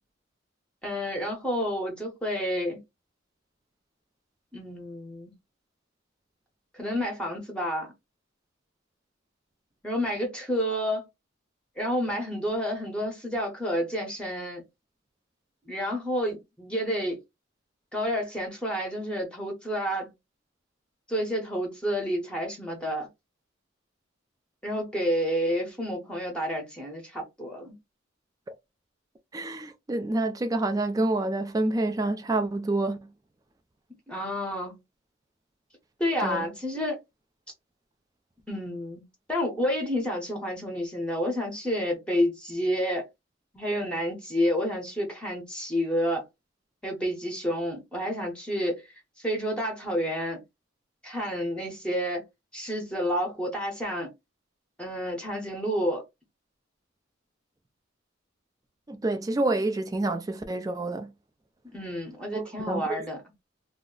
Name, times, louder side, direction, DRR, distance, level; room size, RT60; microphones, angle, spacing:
voice 1, 0.8-2.8 4.5-5.3 6.7-7.9 9.8-11.0 11.8-14.6 15.7-17.2 17.9-20.1 21.1-23.1 24.6-27.7 34.1-34.8 36.0-37.0 38.5-39.0 39.3-43.1 43.5-46.2 46.8-48.8 49.2-50.4 51.0-52.2 52.5-54.1 54.8-56.0 61.7-63.2, equal, 5° left, 0.8 m, -29 dB
voice 2, 29.3-33.0 36.2-36.5 58.9-61.1 62.3-63.0, right 2 dB, 20° right, 0.3 m, -28 dB
2.3 x 2.1 x 3.7 m
head